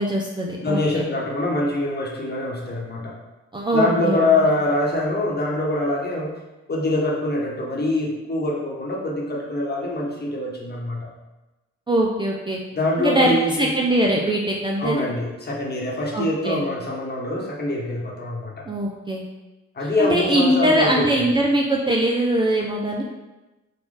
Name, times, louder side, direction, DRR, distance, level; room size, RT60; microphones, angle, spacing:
voice 1, 0.0-1.0 3.5-4.3 11.9-12.6 13.0-15.1 16.1-16.6 18.7-19.2 19.8-23.0, right 1 dB, 15° right, -2 dB, 0.5 m, -22 dB
voice 2, 0.6-3.2 3.7-6.3 6.7-11.1 12.7-13.7 14.8-18.7 19.7-21.3, left 2 dB, 35° left, -2 dB, 1.2 m, -24 dB
4.2 x 2.5 x 4.8 m, 1.1 s
cardioid pair, 90°, 30 cm